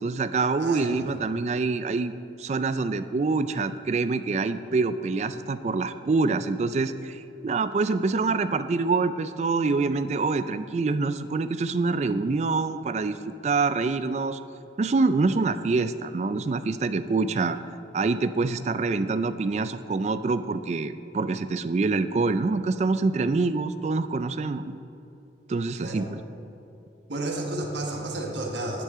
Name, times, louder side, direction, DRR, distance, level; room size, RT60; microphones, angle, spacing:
voice 1, 0.0-2.1 2.4-14.4 14.8-17.6 17.9-24.8 25.5-26.1, right 3 dB, 40° right, 12 dB, 0.3 m, -26 dB
voice 2, 0.6-1.2 25.8-26.0 27.1-28.8, right 1 dB, 80° right, 0 dB, 1.4 m, -32 dB
10.0 x 8.4 x 3.7 m, 2.7 s
head